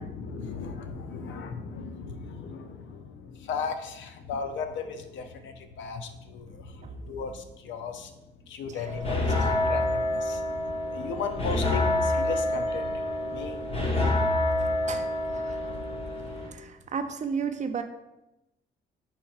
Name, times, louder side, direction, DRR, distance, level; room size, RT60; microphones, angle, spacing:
voice 1, 0.0-8.1 8.5-10.4 10.9-13.6, left 5 dB, 70° left, 7 dB, 0.5 m, -36 dB
sound 1, 8.9-16.5, left 1 dB, 30° left, 0.8 m, -27 dB
voice 2, 14.6-15.1 15.5-15.6 16.5-17.8, right 6 dB, 35° right, 7 dB, 0.4 m, -33 dB
4.4 x 4.2 x 2.4 m, 0.92 s
cardioid pair, 90°, 20 cm